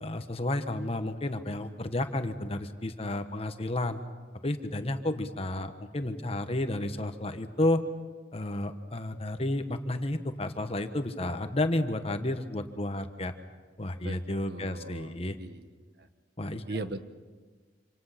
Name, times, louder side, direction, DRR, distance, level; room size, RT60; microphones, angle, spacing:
voice 1, 0.0-4.0 4.4-7.8 8.3-13.3 13.8-15.4 16.4-16.6, left 1 dB, 30° left, 8 dB, 1.2 m, -31 dB
voice 2, 14.0-15.7 16.0-16.1 16.7-17.1, right 2 dB, 55° right, 9 dB, 1.2 m, -39 dB
27.0 x 26.5 x 5.9 m, 1.4 s
head